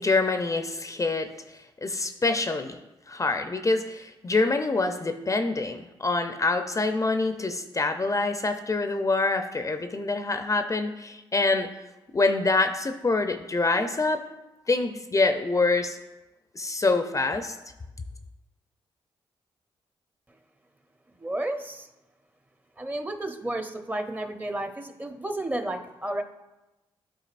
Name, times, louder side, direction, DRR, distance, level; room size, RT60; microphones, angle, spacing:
voice 1, 0.0-1.3 1.8-2.8 3.1-11.7 12.1-14.2 14.7-16.0 16.5-17.6, left 3 dB, 30° left, 7 dB, 0.5 m, -25 dB
voice 2, 21.2-21.9 22.8-26.2, right 1 dB, 15° right, 6 dB, 0.7 m, -32 dB
11.0 x 3.9 x 2.5 m, 1.0 s
supercardioid pair, 45°, 11 cm